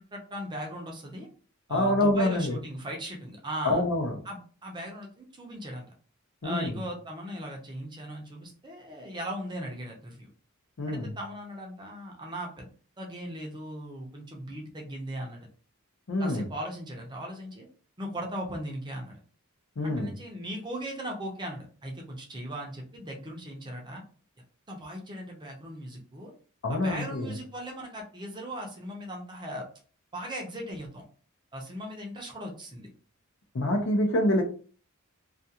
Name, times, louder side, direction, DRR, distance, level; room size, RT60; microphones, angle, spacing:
voice 1, 0.1-1.3 1.7-3.8 4.2-5.9 6.4-10.3 10.9-12.7 13.0-15.5 16.2-17.7 18.0-19.2 19.8-24.0 24.7-26.3 26.7-29.7 30.1-31.0 31.5-32.9, right 1 dB, 20° right, 0 dB, 0.5 m, -38 dB
voice 2, 1.7-2.6 3.6-4.1 6.4-6.8 10.8-11.1 16.1-16.5 19.8-20.1 26.6-27.4 33.5-34.4, left 1 dB, 60° left, 3 dB, 0.6 m, -26 dB
2.3 x 2.3 x 2.7 m, 0.41 s
head